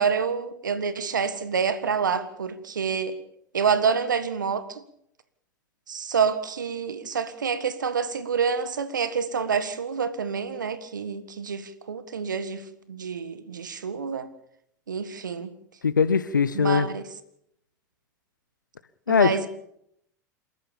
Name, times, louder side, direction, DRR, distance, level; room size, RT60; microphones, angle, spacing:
voice 1, 0.0-3.2 3.5-4.8 5.9-14.3 14.9-15.5 16.5-17.0 19.1-19.5, right 6 dB, 85° right, 1.6 m, -27 dB
voice 2, 15.8-16.9 19.1-19.5, left 6 dB, 90° left, 0.9 m, -21 dB
28.0 x 14.5 x 7.2 m
hypercardioid pair, 90°, 10 cm